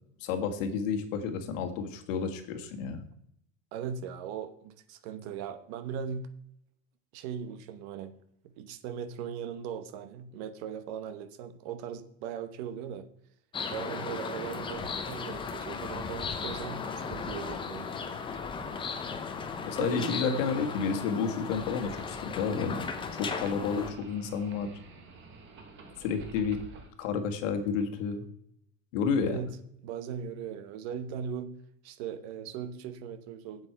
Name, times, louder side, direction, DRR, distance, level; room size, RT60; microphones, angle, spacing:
voice 1, 0.2-3.0 19.7-22.8 23.1-24.7 26.0-26.6 27.0-28.2 28.9-29.4, left 6 dB, 80° left, 6 dB, 1.6 m, -30 dB
voice 2, 3.7-6.3 7.1-8.1 8.4-13.1 13.7-17.9 19.7-20.2 29.3-29.5 29.8-31.5 31.8-33.7, right 7 dB, 60° right, 12 dB, 1.0 m, -39 dB
sound 1, 13.5-23.9, left 5 dB, 15° left, 0.6 m, -36 dB
sound 2, 21.5-26.9, right 4 dB, 30° right, 1.2 m, -50 dB
8.1 x 7.8 x 4.5 m, 0.71 s
supercardioid pair, 160°, 38 cm